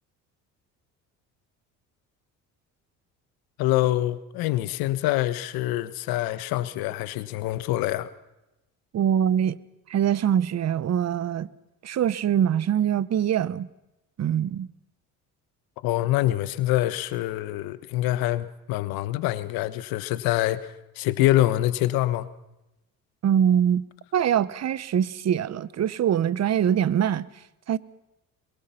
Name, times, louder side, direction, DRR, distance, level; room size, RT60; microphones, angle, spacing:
voice 1, 3.6-8.1 15.8-22.3, left 15 dB, 75° left, 1.3 m, -25 dB
voice 2, 8.9-9.6 9.9-11.5 11.8-13.7 14.2-14.7 23.2-23.9 24.1-27.3 27.7-27.8, right 9 dB, 45° right, 1.0 m, -23 dB
22.5 x 21.5 x 5.8 m
supercardioid pair, 70°, 36 cm